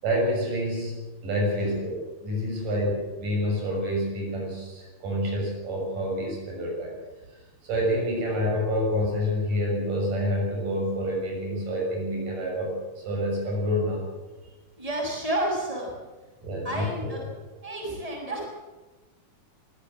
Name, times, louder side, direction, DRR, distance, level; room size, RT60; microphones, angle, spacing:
voice 1, 0.0-1.0 1.2-7.0 7.6-14.0 16.4-17.1, equal, 80° right, -1 dB, 8.4 m, -28 dB
voice 2, 14.7-16.0 16.6-17.3 17.6-18.5, right 1 dB, 10° right, -1 dB, 6.7 m, -30 dB
22.5 x 16.0 x 7.8 m, 1.2 s
omnidirectional pair, 3.7 m